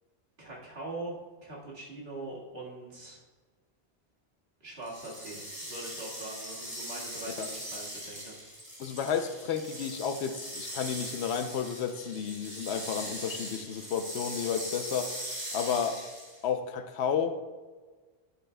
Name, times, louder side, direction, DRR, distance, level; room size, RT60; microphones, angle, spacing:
voice 1, 0.4-1.2 1.4-3.2 4.6-8.3, right 2 dB, 70° right, -5 dB, 2.1 m, -42 dB
sound 1, 4.8-16.4, equal, 30° right, 2.6 m, -41 dB
voice 2, 8.8-15.1 15.5-16.0 16.4-17.4, left 7 dB, 90° left, 9 dB, 0.9 m, -32 dB
10.0 x 7.6 x 2.2 m, 1.3 s
omnidirectional pair, 1.1 m